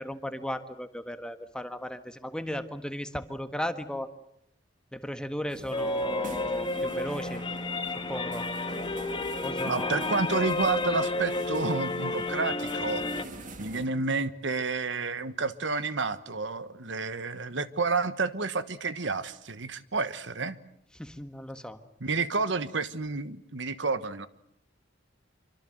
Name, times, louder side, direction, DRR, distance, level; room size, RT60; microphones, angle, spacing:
voice 1, 0.0-4.1 4.9-7.4 8.1-8.5 9.4-10.1 20.9-21.8, equal, 5° left, 8 dB, 1.6 m, -36 dB
sound 1, 5.5-13.9, right 2 dB, 45° right, 2.4 m, -46 dB
sound 2, 5.7-13.2, left 2 dB, 25° left, 2.1 m, -31 dB
voice 2, 9.6-13.0 13.6-20.6 22.0-24.3, right 4 dB, 70° right, 13 dB, 1.3 m, -30 dB
26.5 x 24.5 x 7.9 m, 0.73 s
head